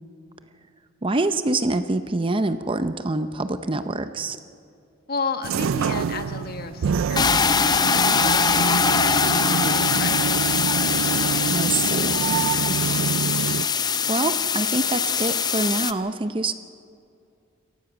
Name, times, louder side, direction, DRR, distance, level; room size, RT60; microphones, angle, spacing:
voice 1, 1.0-4.4 11.5-12.2 12.7-13.2 14.1-16.5, right 2 dB, 25° right, 10 dB, 0.6 m, -26 dB
voice 2, 5.1-10.4, left 4 dB, 45° left, 7 dB, 1.2 m, -33 dB
sound 1, 5.4-13.7, right 6 dB, 70° right, 0.4 m, -27 dB
water spray in plastic bucket fill from hose with nozzle, 7.1-15.9, left 6 dB, 20° left, 0.5 m, -22 dB
28.0 x 15.5 x 6.1 m, 2.4 s
head